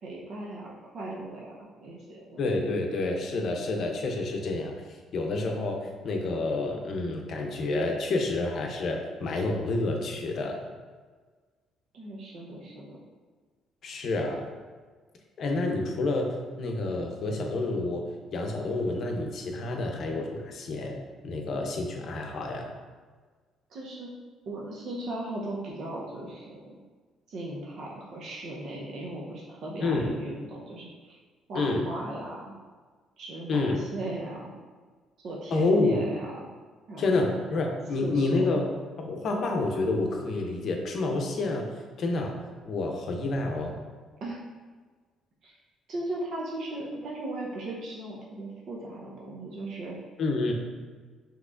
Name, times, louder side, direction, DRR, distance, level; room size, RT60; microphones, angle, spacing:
voice 1, 0.0-2.4 11.9-13.0 23.7-24.1 24.5-26.8 27.3-31.2 31.5-32.6 33.2-34.5 35.2-36.3 36.9-37.4 38.0-38.6 44.2-44.4 45.4-45.6 45.9-50.0, right 1 dB, 55° right, -3 dB, 0.7 m, -37 dB
voice 2, 2.4-4.7 5.1-10.6 13.8-14.4 15.4-18.0 18.3-21.0 21.2-22.7 29.8-30.1 31.5-31.9 33.5-33.8 35.5-36.1 37.0-38.7 39.0-41.7 42.0-42.4 42.6-43.8 50.2-50.5, left 2 dB, 50° left, 2 dB, 0.6 m, -28 dB
6.0 x 3.0 x 2.4 m, 1.4 s
cardioid pair, 135°, 0 cm